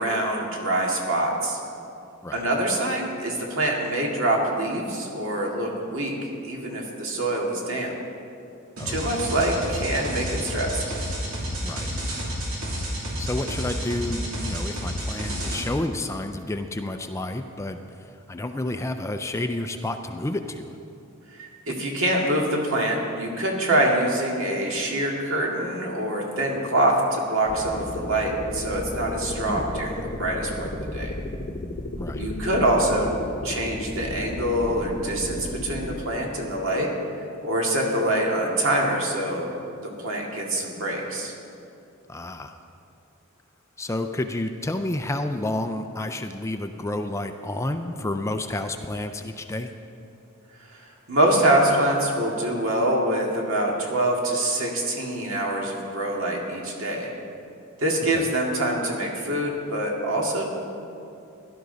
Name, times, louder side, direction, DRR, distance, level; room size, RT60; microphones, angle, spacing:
voice 1, 0.0-1.6 2.3-7.9 8.9-10.8 21.4-31.1 32.2-33.1 33.4-36.9 37.4-39.5 39.8-41.3 51.1-57.1 57.8-60.5, right 1 dB, 65° right, -1 dB, 2.2 m, -25 dB
sound 1, 8.8-15.6, equal, 85° right, 3.0 m, -30 dB
voice 2, 11.6-12.0 13.2-20.8 29.5-29.7 32.0-32.3 42.1-42.6 43.8-49.7 58.1-58.3, left 1 dB, 15° left, 7 dB, 0.4 m, -30 dB
sound 2, 27.5-36.1, left 1 dB, 40° left, 0.8 m, -33 dB
17.0 x 11.5 x 4.0 m, 2.7 s
head